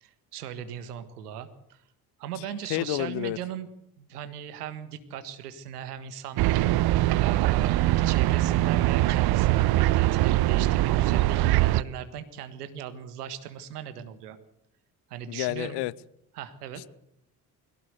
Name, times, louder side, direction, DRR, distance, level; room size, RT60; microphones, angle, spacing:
voice 1, 0.0-1.8 2.2-3.7 4.0-6.7 7.2-14.4 15.1-15.8 16.3-16.8, right 9 dB, 80° right, 1.7 m, -38 dB
voice 2, 2.7-3.4 15.3-15.9 16.7-16.9, left 19 dB, 60° left, 0.8 m, -30 dB
sound 1, 6.4-11.8, right 16 dB, 55° right, 0.8 m, -22 dB
22.5 x 17.0 x 8.1 m
figure-of-eight pair, 50°, 45 cm